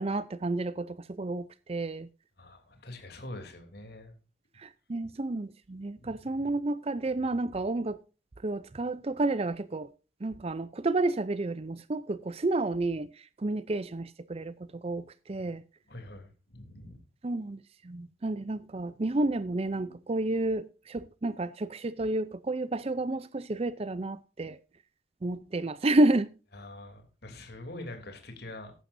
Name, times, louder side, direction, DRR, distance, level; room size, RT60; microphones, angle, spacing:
voice 1, 0.0-2.1 4.6-8.0 8.4-9.9 10.2-15.6 17.2-24.6 25.2-26.3, right 2 dB, 30° right, 0.5 m, -30 dB
voice 2, 2.4-4.1 6.0-6.5 15.9-17.0 26.5-28.7, left 1 dB, 55° left, 3.1 m, -44 dB
15.0 x 11.5 x 2.6 m
head